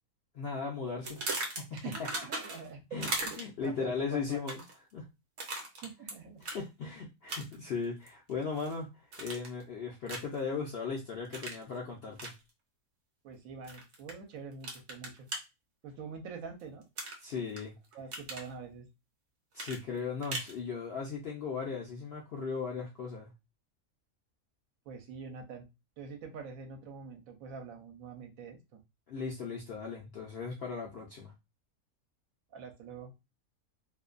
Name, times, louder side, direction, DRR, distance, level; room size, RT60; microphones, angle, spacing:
voice 1, 0.3-1.6 2.9-3.1 3.4-4.6 4.9-5.1 6.4-8.9 9.2-12.3 17.2-17.7 19.5-23.3 29.1-31.3, left 5 dB, 65° left, -2 dB, 0.6 m, -37 dB
sound 1, 1.0-2.7 3.0-3.7 4.3-4.8 5.4-6.1 6.4-6.6 7.3-7.7 8.1-8.7 9.1-9.6 10.1-10.4 11.3-11.6 12.2-12.3 13.7-14.1 14.6-15.4 17.0-17.6 17.9-18.5 19.6-20.5, right 2 dB, 55° right, 0.9 m, -38 dB
voice 2, 1.7-3.3 3.6-4.4 5.8-6.4 13.2-15.3 15.8-16.8 17.9-18.9 24.9-25.7 26.0-28.8 32.5-33.1, right 5 dB, 75° right, 4 dB, 1.0 m, -45 dB
2.6 x 2.1 x 2.4 m, 0.24 s
omnidirectional pair, 1.5 m